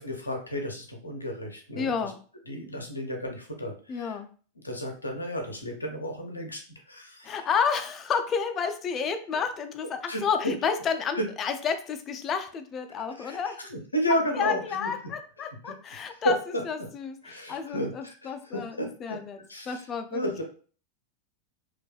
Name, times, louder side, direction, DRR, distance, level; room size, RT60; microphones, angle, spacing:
voice 1, 0.0-2.1 2.5-4.2 4.6-6.6 6.9-7.5 10.1-10.5 11.1-11.2 13.0-14.9 15.6-16.6 17.2-19.2 19.5-19.9 20.1-20.4, equal, 80° left, 3 dB, 0.5 m, -32 dB
voice 2, 1.8-2.2 3.9-4.3 7.2-13.6 14.3-16.4 16.6-19.4 19.7-20.2, left 6 dB, 25° left, 8 dB, 0.3 m, -30 dB
2.6 x 2.2 x 2.2 m, 0.42 s
figure-of-eight pair, 90°, 0 cm